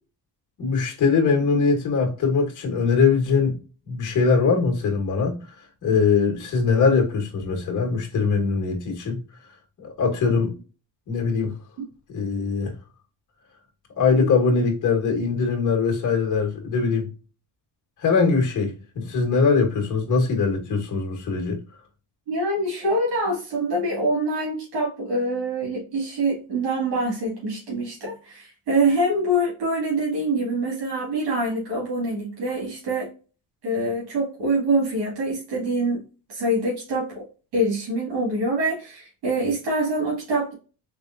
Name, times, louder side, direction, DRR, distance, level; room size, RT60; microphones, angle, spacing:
voice 1, 0.6-3.6 3.9-5.4 5.8-9.2 9.8-10.5 11.1-11.5 12.1-12.7 14.0-17.0 18.0-21.6, left 5 dB, 50° left, 1.5 m, -22 dB
voice 2, 22.3-33.1 33.6-36.0 36.3-37.2 37.5-40.5, right 1 dB, 85° right, 2.1 m, -25 dB
4.3 x 3.3 x 2.6 m
cardioid pair, 145°, 39 cm